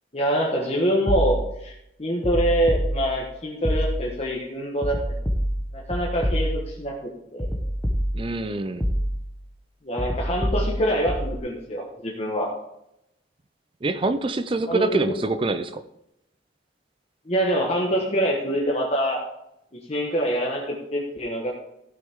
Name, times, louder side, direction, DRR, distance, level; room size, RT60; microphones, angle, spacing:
voice 1, 0.1-1.7 2.0-5.0 5.7-6.9 7.3-7.5 9.8-12.5 14.7-15.2 17.2-19.3 19.9-21.5, equal, 35° left, -2 dB, 1.3 m, -25 dB
sound 1, 1.1-1.7 2.2-3.3 3.6-4.3 4.8-6.9 7.4-8.5 8.8-9.4 10.0-11.4, equal, 10° left, 0.9 m, -27 dB
voice 2, 8.1-8.9 13.8-15.8, right 2 dB, 30° right, 10 dB, 0.4 m, -25 dB
15.0 x 6.2 x 3.6 m, 0.83 s
head